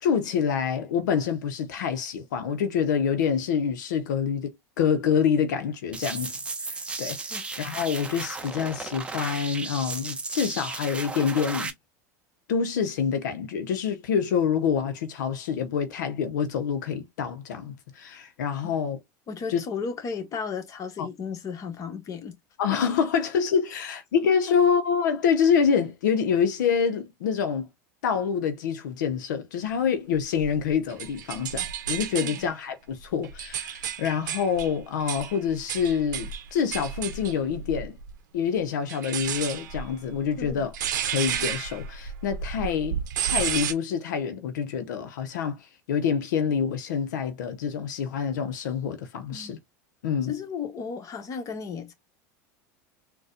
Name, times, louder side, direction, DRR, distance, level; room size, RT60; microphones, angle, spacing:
voice 1, 0.0-4.5 4.8-6.3 6.7-11.7 12.5-19.0 19.5-19.6 21.0-21.1 22.6-27.7 28.0-38.0 38.3-40.7 41.0-49.6 50.0-50.3, left 7 dB, 85° left, 0.6 m, -26 dB
sound 1, 5.9-11.7, right 3 dB, 10° right, 0.6 m, -35 dB
voice 2, 19.3-22.3 23.7-23.8 32.2-32.5 40.4-40.6 49.3-49.6 50.3-51.9, left 5 dB, 35° left, 1.1 m, -34 dB
sound 2, 30.4-32.5 33.0-38.1 38.9-43.7, right 8 dB, 90° right, 0.7 m, -32 dB
4.0 x 2.1 x 2.5 m
supercardioid pair, 120°, 10 cm